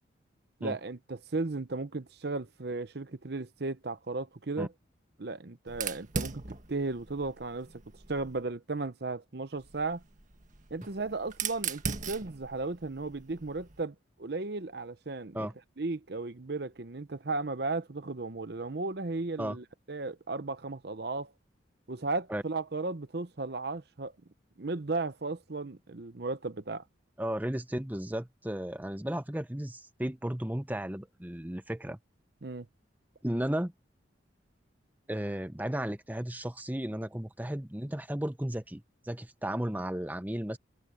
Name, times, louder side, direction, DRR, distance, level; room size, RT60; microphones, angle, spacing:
voice 1, 0.6-4.7 5.2-6.4 6.7-7.7 8.1-10.0 10.7-15.5 15.8-21.3 21.9-24.1 24.6-26.8 32.4-32.7, right 3 dB, 55° right, 0.8 m, -35 dB
Fire, 5.7-8.4 9.6-13.8, right 5 dB, 40° right, 1.8 m, -39 dB
voice 2, 27.2-32.0 33.2-33.7 35.1-38.8 39.1-40.6, right 1 dB, 10° right, 0.9 m, -34 dB
head